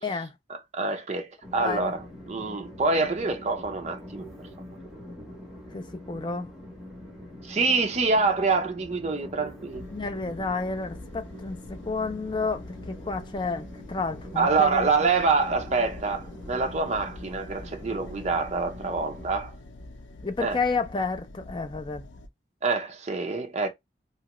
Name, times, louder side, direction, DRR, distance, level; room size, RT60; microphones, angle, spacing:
voice 1, 0.0-0.3 1.6-1.9 5.7-6.5 9.9-14.9 20.2-22.1, left 4 dB, 25° left, 0.5 m, -31 dB
voice 2, 0.7-4.3 7.4-9.9 14.4-19.5 20.4-20.6 22.6-23.7, right 4 dB, 35° right, 0.5 m, -26 dB
Train, 1.4-19.3, left 1 dB, 5° right, 1.0 m, -44 dB
sound 1, 9.7-22.3, left 2 dB, 85° left, 0.5 m, -45 dB
2.9 x 2.3 x 3.0 m
head